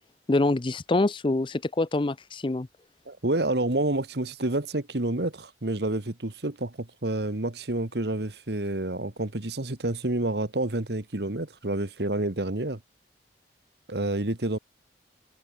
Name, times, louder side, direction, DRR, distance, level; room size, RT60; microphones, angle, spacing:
voice 1, 0.3-2.7, left 2 dB, 30° left, 0.5 m, -25 dB
voice 2, 3.1-12.8 13.9-14.6, right 2 dB, 70° right, 1.7 m, -29 dB
head